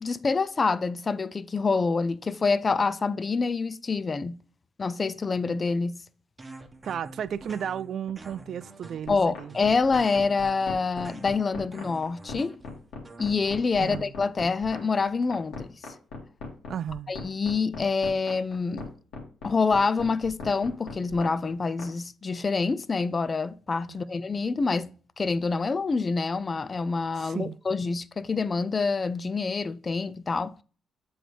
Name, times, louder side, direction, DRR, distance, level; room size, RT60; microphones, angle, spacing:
voice 1, 0.0-4.4 4.8-6.0 9.1-12.6 13.2-15.7 17.1-18.9 19.4-24.9 25.2-30.6, left 4 dB, 35° left, 0.4 m, -26 dB
sound 1, 6.4-13.5, right 2 dB, 25° right, 0.9 m, -47 dB
voice 2, 6.8-9.6 13.8-14.1 16.7-17.1 23.9-24.0 27.2-27.6, right 8 dB, 60° right, 0.3 m, -34 dB
sound 2, 9.0-21.9, left 4 dB, 85° left, 1.9 m, -39 dB
7.7 x 3.9 x 3.3 m
cardioid pair, 90°, 0 cm